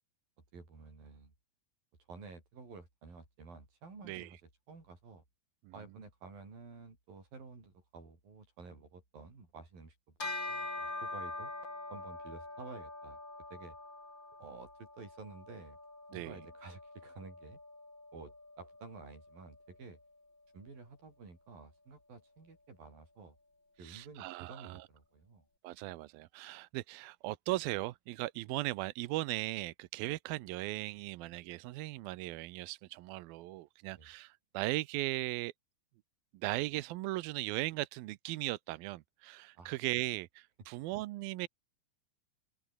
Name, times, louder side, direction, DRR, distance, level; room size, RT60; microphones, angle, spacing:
voice 1, 0.5-1.3 2.1-5.2 5.7-11.5 11.9-13.2 13.5-13.8 14.4-15.8 16.1-17.6 18.1-20.0 20.5-23.4 23.8-25.5 34.0-34.1 39.6-39.8, right 4 dB, 60° right, 9.0 m, -52 dB
Bell, 10.2-19.9, left 2 dB, 25° left, 8.7 m, -45 dB
voice 2, 23.8-24.8 25.6-35.5 36.4-41.5, right 18 dB, 75° right, 2.4 m, -38 dB
omnidirectional pair, 4.6 m